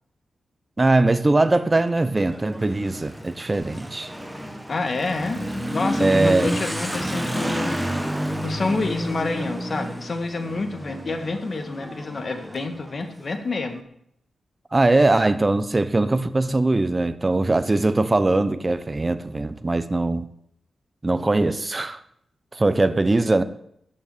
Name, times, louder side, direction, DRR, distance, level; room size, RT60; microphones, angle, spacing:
voice 1, 0.8-4.1 6.0-6.5 14.7-20.3 21.0-22.0 22.5-23.4, right 2 dB, 20° right, 12 dB, 0.9 m, -21 dB
Motorcycle / Accelerating revving vroom, 1.4-13.7, equal, 5° right, 1.4 m, -30 dB
voice 2, 4.7-5.4 5.7-7.8 8.4-13.8, left 3 dB, 40° left, 7 dB, 1.9 m, -28 dB
14.0 x 6.5 x 9.4 m, 0.71 s
wide cardioid pair, 125°, 0 cm